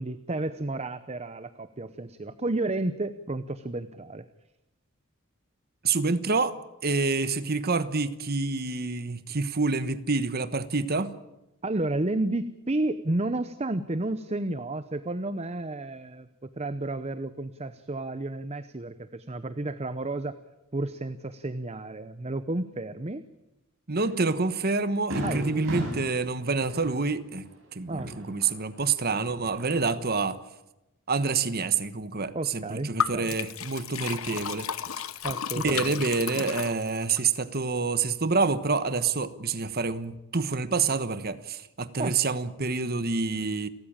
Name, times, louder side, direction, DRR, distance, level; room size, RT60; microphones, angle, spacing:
voice 1, 0.0-4.3 11.6-20.4 20.7-23.2 25.2-25.6 27.9-28.1 32.3-33.4 35.2-36.0 42.0-42.2, right 2 dB, 30° right, 0.8 m, -32 dB
voice 2, 5.8-6.6 6.8-11.1 23.9-30.4 31.1-34.7 35.6-43.7, right 4 dB, 45° right, 1.2 m, -27 dB
Fireworks, 24.1-24.2 24.6-24.7 25.1-28.9 29.2-30.0, equal, 65° right, 7.5 m, -36 dB
Liquid, 33.0-37.2, left 7 dB, 75° left, 1.1 m, -33 dB
30.0 x 14.0 x 8.8 m
head